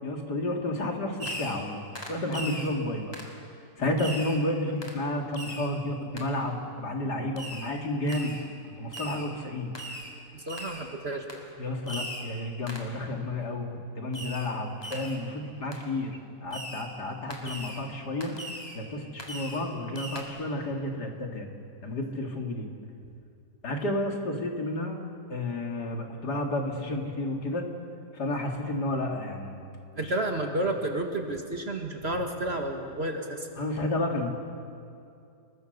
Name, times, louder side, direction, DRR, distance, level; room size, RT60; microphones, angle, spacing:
voice 1, 0.0-1.8 2.1-3.1 3.8-8.3 8.8-9.7 11.6-13.7 13.9-18.3 18.7-21.5 21.8-22.7 23.6-25.0 25.3-27.7 28.1-29.6 29.9-30.1 33.6-34.3, left 1 dB, 65° left, 1 dB, 3.2 m, -31 dB
Fireworks, 1.2-1.7 2.0-2.7 3.1-3.4 4.0-4.4 4.8-5.0 5.3-5.7 6.2-6.3 7.4-7.7 8.1-8.4 8.9-9.3 9.8-10.1 10.5-10.9 11.3-11.4 11.9-12.3 12.7-12.9 14.1-14.5 14.8-15.2 15.7-15.8 16.5-16.9 17.3-17.8 18.2-18.8 19.2-19.7 20.0-20.2, equal, 15° left, 3.5 m, -39 dB
voice 2, 10.3-11.2 30.0-33.5, right 1 dB, 35° right, 3 dB, 2.2 m, -31 dB
30.0 x 22.0 x 6.8 m, 2.5 s
omnidirectional pair, 1.9 m